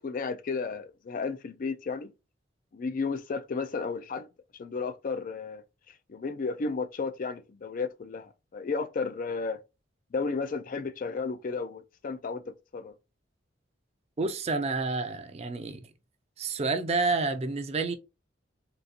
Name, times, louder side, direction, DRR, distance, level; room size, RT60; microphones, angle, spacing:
voice 1, 0.0-2.1 2.7-4.3 4.5-5.6 5.9-9.6 10.1-12.9, left 4 dB, 45° left, 0.4 m, -33 dB
voice 2, 14.2-15.8 16.4-17.9, right 3 dB, 35° right, 0.4 m, -29 dB
3.8 x 2.4 x 2.7 m
head